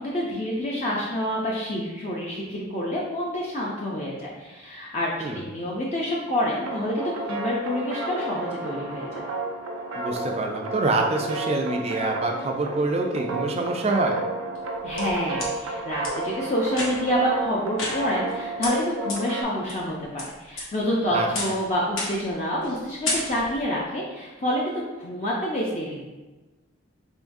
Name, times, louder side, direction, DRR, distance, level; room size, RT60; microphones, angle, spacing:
voice 1, 0.0-9.2 14.8-26.0, equal, 30° left, -4 dB, 0.4 m, -28 dB
sound 1, 6.5-19.4, right 2 dB, 85° right, 0.6 m, -32 dB
voice 2, 9.9-14.2 21.1-21.3, right 2 dB, 30° right, 2 dB, 0.4 m, -26 dB
sound 2, 14.5-15.5 16.0-16.1 16.7-17.2 17.8-18.3 18.6-18.7 19.1-19.2 19.7-20.2 20.6-21.0 21.3-21.6 22.0-22.3 22.6-22.8 23.0-23.6, left 2 dB, 75° left, 1.0 m, -31 dB
3.8 x 3.6 x 2.6 m, 1.2 s
head